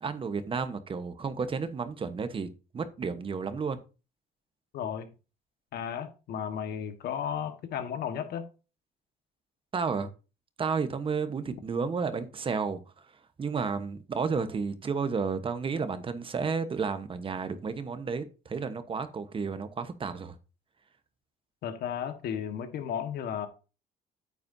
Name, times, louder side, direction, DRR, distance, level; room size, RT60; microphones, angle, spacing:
voice 1, 0.0-2.5 2.7-3.8 9.7-10.1 10.6-12.8 13.4-20.4, right 5 dB, 30° right, 1.1 m, -32 dB
voice 2, 4.7-5.1 5.7-8.4 21.6-23.5, left 8 dB, 70° left, 1.5 m, -34 dB
9.3 x 8.4 x 2.7 m
cardioid pair, 110°, 17 cm